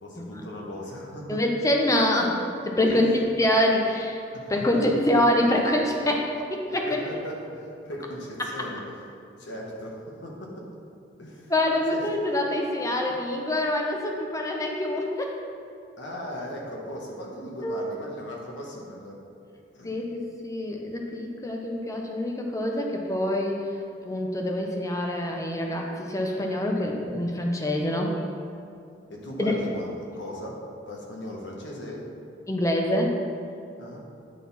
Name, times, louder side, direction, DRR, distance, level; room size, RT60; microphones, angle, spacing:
voice 1, 0.0-1.4 2.9-3.1 4.3-5.0 6.9-8.8 9.4-10.7 11.2-11.5 11.9-12.0 16.0-19.2 19.7-19.9 29.1-30.6 30.9-32.0 33.8-34.0, left 1 dB, 80° left, -2 dB, 1.2 m, -38 dB
voice 2, 1.3-3.1 3.4-4.2 4.5-7.0 11.5-15.4 17.6-17.8 19.8-23.6 24.0-28.1 29.4-29.5 32.5-33.2, left 1 dB, 15° left, 0 dB, 0.7 m, -25 dB
9.2 x 4.1 x 4.2 m, 2.4 s
head